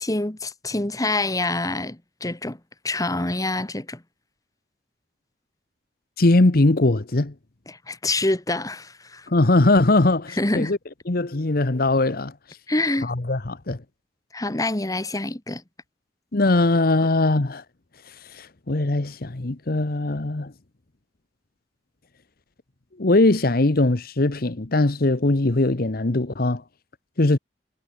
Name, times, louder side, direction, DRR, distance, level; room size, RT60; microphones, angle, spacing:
voice 1, 0.0-2.6 2.8-4.0 7.7-9.3 10.4-10.7 12.7-13.1 14.3-15.6, left 2 dB, 20° left, 1.4 m, -26 dB
voice 2, 6.2-7.3 9.3-10.8 11.1-12.3 13.0-13.8 16.3-17.6 18.1-20.5 23.0-26.6 27.2-27.4, left 2 dB, 60° left, 1.1 m, -20 dB
head